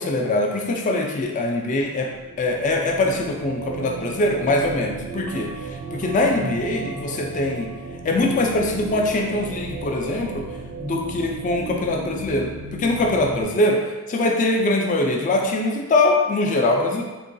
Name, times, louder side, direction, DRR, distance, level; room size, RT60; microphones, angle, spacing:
voice 1, 0.0-2.1 2.4-7.7 8.0-10.5 10.8-13.8 14.1-17.0, left 2 dB, 35° left, 1 dB, 0.3 m, -22 dB
sound 1, 1.9-13.4, right 4 dB, 85° right, 0.5 m, -35 dB
3.7 x 2.2 x 2.6 m, 1.2 s
head